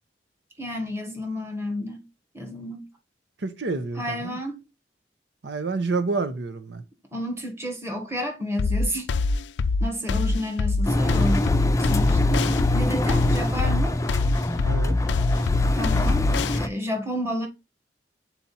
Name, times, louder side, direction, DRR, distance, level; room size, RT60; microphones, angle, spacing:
voice 1, 0.6-2.0 2.3-2.9 3.9-4.6 7.1-9.1 9.8-11.5 11.8-12.4 12.7-14.0 15.7-17.5, left 1 dB, 15° right, 1.5 m, -31 dB
voice 2, 3.4-4.4 5.4-6.8 14.6-15.0, right 3 dB, 80° right, 0.8 m, -28 dB
sound 1, 8.6-16.6, left 3 dB, 90° left, 0.4 m, -24 dB
Engine, 10.8-16.7, left 1 dB, 20° left, 0.5 m, -24 dB
7.3 x 4.2 x 4.2 m
head